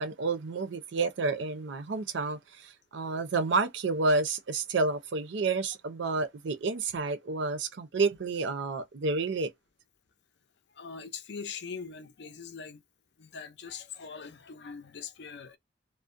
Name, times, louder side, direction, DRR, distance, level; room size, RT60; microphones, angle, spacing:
voice 1, 0.0-9.5, right 3 dB, 65° right, 0.5 m, -30 dB
voice 2, 10.8-12.8 13.2-15.6, left 6 dB, 60° left, 0.5 m, -42 dB
2.4 x 2.1 x 2.4 m
head